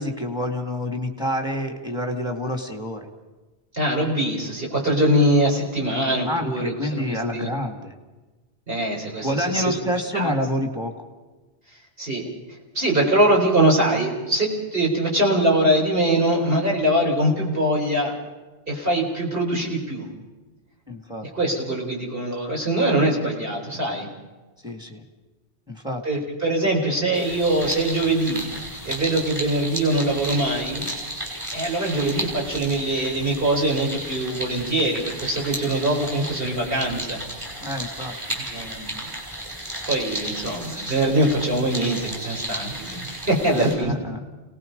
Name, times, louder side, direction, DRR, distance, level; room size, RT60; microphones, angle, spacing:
voice 1, 0.0-3.1 6.3-8.0 9.2-10.9 20.9-21.3 24.6-25.0 25.7-26.0 37.6-38.4 43.5-44.2, left 1 dB, 5° right, 4 dB, 2.1 m, -28 dB
voice 2, 3.7-7.5 8.7-9.7 10.1-10.3 12.0-12.2 12.7-18.1 18.7-20.0 21.3-24.1 26.0-28.4 28.8-30.9 31.5-37.2 38.4-39.1 39.9-43.9, right 1 dB, 60° right, -1 dB, 4.6 m, -23 dB
sound 1, 27.1-43.7, right 1 dB, 20° right, 5.6 m, -33 dB
29.0 x 19.0 x 5.3 m, 1.2 s
omnidirectional pair, 1.1 m